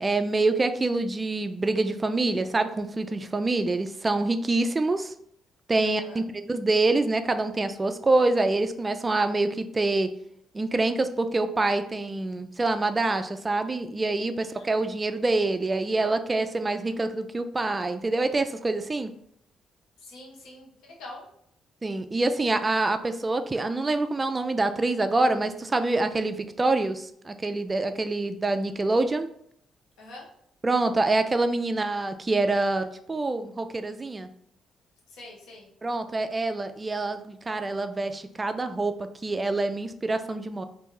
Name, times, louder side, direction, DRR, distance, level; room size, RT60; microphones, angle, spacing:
voice 1, 0.0-5.1 5.7-10.1 10.5-19.1 21.8-29.3 30.6-34.3 35.8-40.6, right 2 dB, 25° right, 9 dB, 0.3 m, -26 dB
voice 2, 5.8-6.2 14.4-14.7 20.0-21.3 30.0-30.3 35.1-35.7, left 2 dB, 90° left, -2 dB, 1.0 m, -45 dB
2.9 x 2.6 x 3.7 m, 0.68 s
cardioid pair, 90°, 0 cm